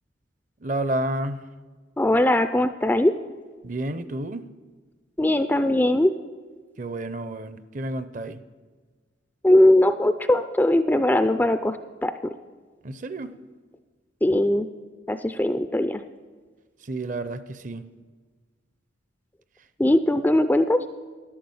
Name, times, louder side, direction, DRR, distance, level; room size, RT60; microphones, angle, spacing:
voice 1, 0.6-1.5 3.6-4.5 6.8-8.4 12.8-13.3 16.8-17.8, right 1 dB, 40° right, 12 dB, 0.6 m, -30 dB
voice 2, 2.0-3.1 5.2-6.1 9.4-12.1 14.2-14.7 15.1-16.0 19.8-20.8, left 1 dB, 10° left, 10 dB, 0.3 m, -20 dB
11.5 x 11.5 x 7.0 m, 1.4 s
head